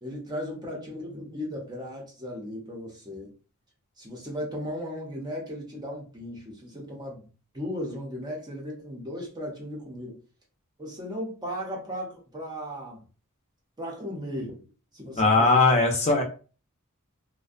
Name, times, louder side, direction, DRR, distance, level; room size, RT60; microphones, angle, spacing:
voice 1, 0.0-3.3 4.0-7.3 7.5-10.2 10.8-13.0 13.8-14.6 14.9-15.8, equal, 20° right, -1 dB, 0.6 m, -36 dB
voice 2, 15.2-16.2, left 3 dB, 30° left, 2 dB, 0.5 m, -20 dB
2.5 x 2.1 x 2.4 m, 0.35 s
head